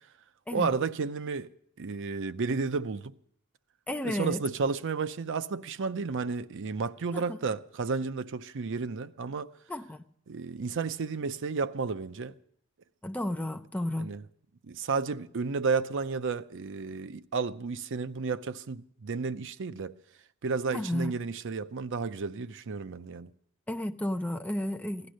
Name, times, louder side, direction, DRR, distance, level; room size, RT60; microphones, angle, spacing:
voice 1, 0.5-1.5 1.8-3.1 4.0-9.5 10.3-12.3 14.0-14.2 14.6-20.0 20.4-23.3, right 4 dB, 60° right, 0.6 m, -32 dB
voice 2, 3.9-4.4 7.1-7.4 9.7-10.1 13.0-14.1 20.7-21.1 23.7-25.1, left 1 dB, 5° left, 0.6 m, -32 dB
16.5 x 12.0 x 6.3 m
head